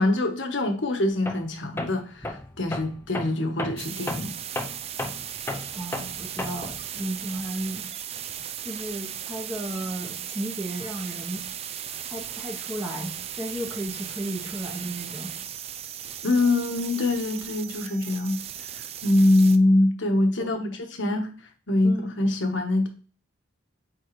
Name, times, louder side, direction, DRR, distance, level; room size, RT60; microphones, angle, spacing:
voice 1, 0.0-4.3 16.2-18.4 19.0-21.3 21.7-22.9, left 2 dB, 75° left, 1.3 m, -23 dB
Tools, 1.3-1.5 1.8-6.8, left 2 dB, 10° left, 0.6 m, -34 dB
sound 1, 3.8-19.6, right 10 dB, 30° right, 0.3 m, -37 dB
voice 2, 5.7-7.9 8.6-11.4 12.1-15.3 20.4-20.5 21.8-22.1, right 1 dB, 10° right, 1.0 m, -34 dB
9.0 x 3.9 x 3.2 m
head